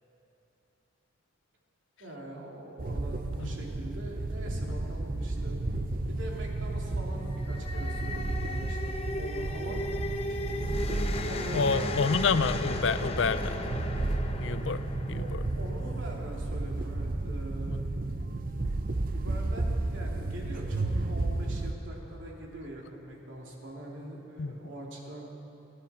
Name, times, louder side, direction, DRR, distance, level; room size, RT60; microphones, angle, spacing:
voice 1, 2.0-5.6 6.1-8.8 9.2-9.8 11.2-12.0 15.1-17.8 19.1-25.3, right 1 dB, 75° right, -2 dB, 2.8 m, -43 dB
sound 1, 2.8-21.7, right 2 dB, 45° right, 0.6 m, -33 dB
sound 2, 7.2-16.5, left 2 dB, 30° left, 0.8 m, -36 dB
voice 2, 11.5-13.6 14.4-14.8 15.1-15.4 24.4-24.5, left 5 dB, 70° left, 13 dB, 0.5 m, -28 dB
30.0 x 11.0 x 4.3 m, 2.9 s
head